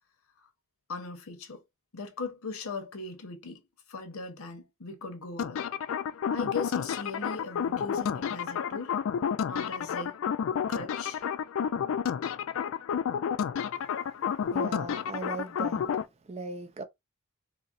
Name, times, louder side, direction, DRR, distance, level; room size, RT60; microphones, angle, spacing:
voice 1, 0.9-1.6 1.9-3.6 3.9-5.7 6.3-8.9 9.5-10.2 10.7-11.2, left 4 dB, 90° left, 0.8 m, -39 dB
sound 1, 5.4-16.0, left 7 dB, 70° left, 0.3 m, -30 dB
voice 2, 14.5-15.9 16.3-16.8, right 3 dB, 30° right, 0.4 m, -38 dB
3.9 x 2.0 x 2.4 m
head